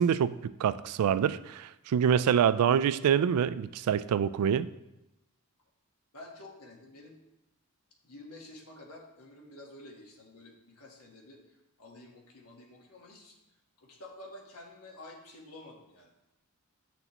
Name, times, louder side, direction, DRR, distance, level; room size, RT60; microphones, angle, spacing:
voice 1, 0.0-4.7, right 8 dB, 85° right, 17 dB, 0.3 m, -26 dB
voice 2, 6.1-7.2 8.0-11.4 11.8-13.4 13.8-16.1, left 2 dB, 85° left, 0 dB, 1.3 m, -50 dB
7.9 x 6.1 x 2.9 m, 0.93 s
head